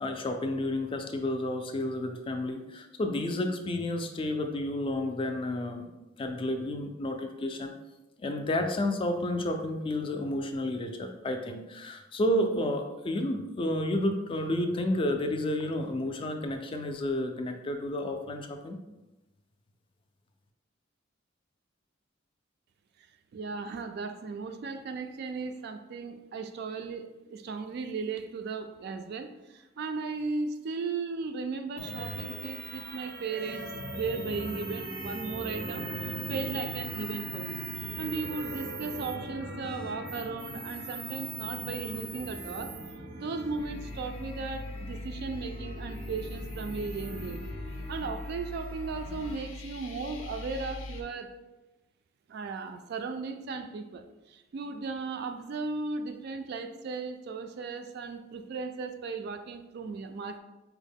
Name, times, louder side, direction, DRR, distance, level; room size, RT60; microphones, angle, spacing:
voice 1, 0.0-5.9 6.2-7.7 8.2-18.8, left 1 dB, 25° left, 5 dB, 0.3 m, -31 dB
voice 2, 23.3-35.9 36.3-37.7 38.0-42.7 43.1-47.4 47.9-51.3 52.3-60.4, right 4 dB, 55° right, 7 dB, 0.3 m, -36 dB
sound 1, 31.8-49.4, right 2 dB, 80° right, 0.7 m, -40 dB
sound 2, 43.6-51.0, left 2 dB, 85° left, 0.5 m, -41 dB
4.4 x 2.1 x 3.4 m, 1.0 s
head